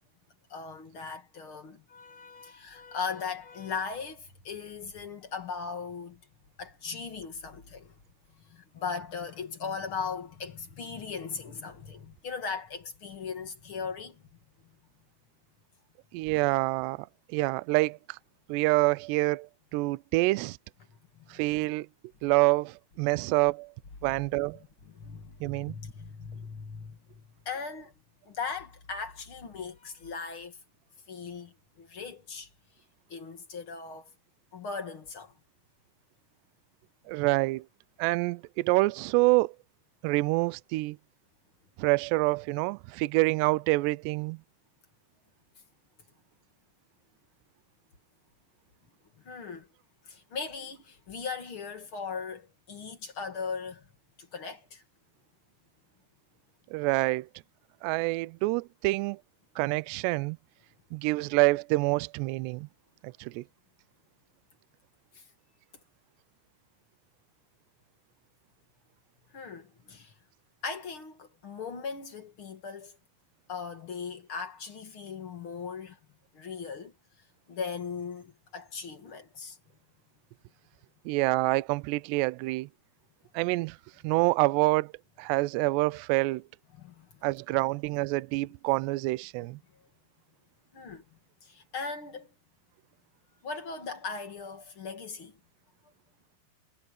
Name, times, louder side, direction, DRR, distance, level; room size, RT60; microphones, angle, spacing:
voice 1, 0.5-6.2 6.6-7.9 8.5-14.2 20.9-21.4 24.9-27.9 28.3-30.6 31.1-32.5 33.1-34.1 34.5-35.3 49.2-49.7 50.0-53.9 54.2-54.8 65.1-65.2 69.3-70.1 70.6-73.0 73.5-76.0 76.3-76.9 77.5-79.6 86.7-87.2 90.7-91.0 91.4-92.3 93.4-95.4, left 5 dB, 45° left, 1.9 m, -38 dB
voice 2, 16.1-17.1 17.3-18.2 18.5-20.6 21.3-21.9 22.2-23.7 24.0-24.6 25.4-25.8 37.1-37.7 38.0-39.5 40.0-41.0 41.8-44.4 56.7-57.3 57.8-59.2 59.6-60.4 60.9-62.7 63.0-63.4 81.1-82.7 83.3-83.8 84.0-84.9 85.2-86.4 87.2-89.6, right 22 dB, 90° right, 2.4 m, -27 dB
omnidirectional pair, 5.6 m